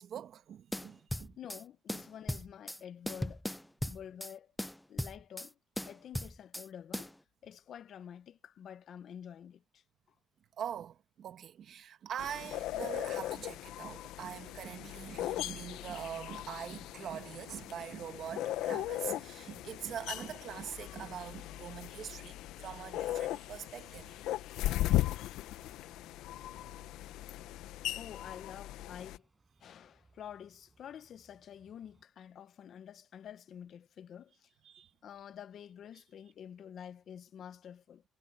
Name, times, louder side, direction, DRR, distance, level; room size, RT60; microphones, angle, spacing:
voice 1, 0.0-1.4 3.8-4.0 10.6-24.1 26.3-26.9 34.6-34.9, right 9 dB, 55° right, 2.0 m, -43 dB
sound 1, 0.7-1.6 1.9-2.8 3.1-4.3 4.6-5.5 5.8-6.7 6.9-7.1, left 1 dB, 5° left, 0.4 m, -38 dB
voice 2, 1.4-3.5 3.8-4.5 4.9-7.1 7.4-9.8 28.0-29.3 29.6-34.5 35.0-38.0, left 9 dB, 50° left, 1.0 m, -49 dB
sound 2, 12.2-29.2, left 14 dB, 80° left, 0.8 m, -38 dB
sound 3, 14.2-32.1, right 3 dB, 20° right, 5.8 m, -69 dB
cardioid pair, 125°, 0 cm